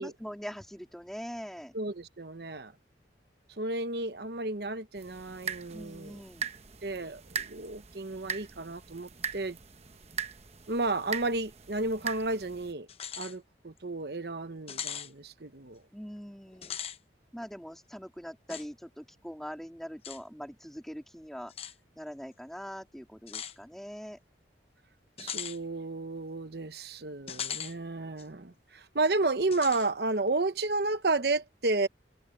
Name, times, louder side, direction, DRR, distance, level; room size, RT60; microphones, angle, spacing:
voice 1, 0.0-1.8 5.7-6.5 15.9-16.7 17.3-21.5 22.0-24.2, equal, ahead, 2.4 m, -42 dB
voice 2, 1.7-2.7 3.5-6.2 6.8-9.6 10.7-12.9 13.2-15.8 25.2-31.9, right 2 dB, 60° right, 1.0 m, -32 dB
sound 1, 5.0-12.7, right 7 dB, 35° right, 1.0 m, -40 dB
sound 2, 12.9-13.3 13.8-13.9 14.7-15.1 16.5-17.0 18.5-18.7 20.0-20.2 21.5-21.7 23.3-23.6 25.2-25.6 27.3-27.7 28.2-28.3 29.5-29.9, left 8 dB, 35° left, 0.9 m, -38 dB
head